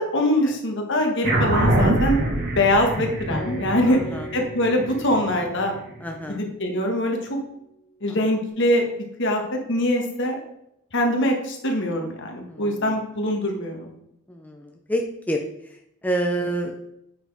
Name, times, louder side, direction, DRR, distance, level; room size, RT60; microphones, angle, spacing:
voice 1, 0.0-2.2 2.6-4.0 4.3-5.7 6.3-7.4 8.0-8.8 9.2-10.3 10.9-13.9, left 1 dB, 55° left, 2 dB, 1.5 m, -23 dB
sound 1, 1.2-6.0, right 1 dB, 45° right, 1.2 m, -24 dB
Acoustic guitar, 3.3-7.0, left 1 dB, 25° left, 1.1 m, -39 dB
voice 2, 3.9-4.3 6.0-6.4 8.2-8.3 12.5-13.0 14.3-16.8, right 1 dB, 5° left, 2 dB, 0.5 m, -29 dB
7.9 x 4.3 x 4.9 m, 0.78 s
head